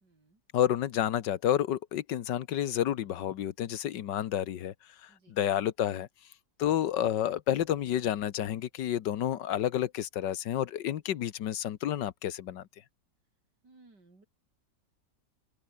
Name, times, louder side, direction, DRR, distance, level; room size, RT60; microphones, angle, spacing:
voice 1, 0.0-0.4 5.1-5.4 13.6-14.3, right 3 dB, 70° right, 5.8 m, -60 dB
voice 2, 0.5-4.7 5.0-6.1 6.6-12.6, left 11 dB, 85° left, 1.7 m, -30 dB
omnidirectional pair, 1.9 m